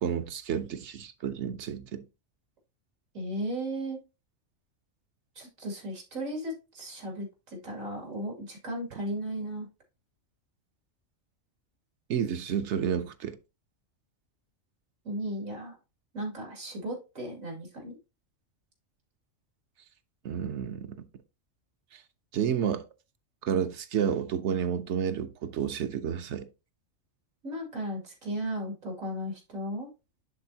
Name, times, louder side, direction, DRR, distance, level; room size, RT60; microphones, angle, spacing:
voice 1, 0.0-2.1 12.1-13.4 20.2-21.0 21.9-22.0 22.3-22.8 23.4-26.5, right 8 dB, 65° right, 0.9 m, -30 dB
voice 2, 3.1-4.0 5.3-9.7 15.0-15.8 16.1-18.0 27.4-29.9, right 1 dB, 90° right, 2.9 m, -35 dB
10.5 x 4.0 x 2.7 m
omnidirectional pair, 1.4 m